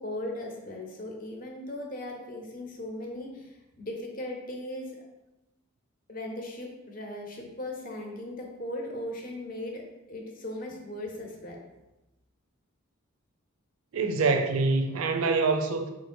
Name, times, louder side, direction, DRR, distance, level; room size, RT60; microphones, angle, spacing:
voice 1, 0.0-5.0 6.1-9.8 10.1-11.6, left 1 dB, 40° left, 1 dB, 0.8 m, -38 dB
voice 2, 13.9-15.9, right 3 dB, 85° right, 6 dB, 0.5 m, -25 dB
3.8 x 3.2 x 4.3 m, 1.0 s
head